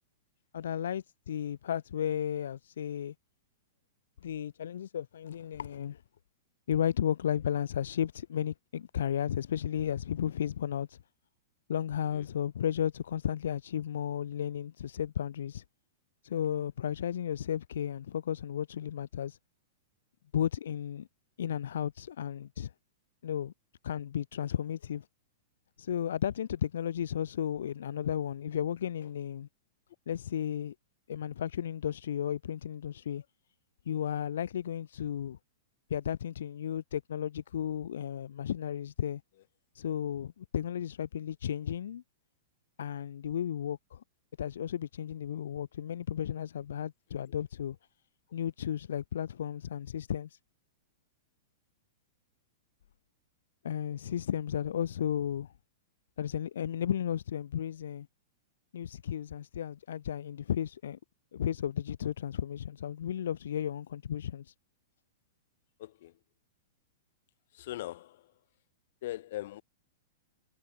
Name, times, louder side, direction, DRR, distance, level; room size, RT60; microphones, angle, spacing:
voice 1, 0.5-3.1 4.2-6.0 6.7-11.0 11.7-15.6 16.2-19.4 20.3-21.1 21.4-22.7 23.2-23.5 23.8-25.1 25.8-29.5 30.1-30.7 31.1-33.2 33.9-35.4 35.9-39.2 39.7-42.0 42.8-44.0 44.4-47.8 48.3-50.4 53.6-55.5 56.2-58.1 58.7-61.0 61.3-64.5, left 9 dB, 80° left, 0.8 m, -34 dB
voice 2, 65.8-66.2 67.5-68.4 69.0-69.6, left 15 dB, 50° left, 2.5 m, -41 dB
supercardioid pair, 175°, 0 cm